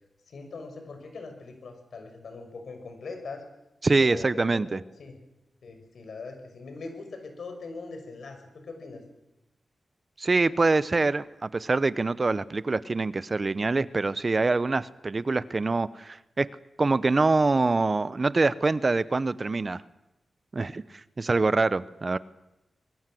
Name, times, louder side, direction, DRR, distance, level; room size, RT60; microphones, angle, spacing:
voice 1, 0.3-3.4 4.0-5.2 5.6-9.0, left 3 dB, 80° left, 6 dB, 6.0 m, -41 dB
voice 2, 3.8-4.8 10.2-16.5 16.8-19.8 20.5-22.2, right 3 dB, 40° right, 16 dB, 0.9 m, -25 dB
24.0 x 22.5 x 7.8 m, 0.94 s
cardioid pair, 80°, 0 cm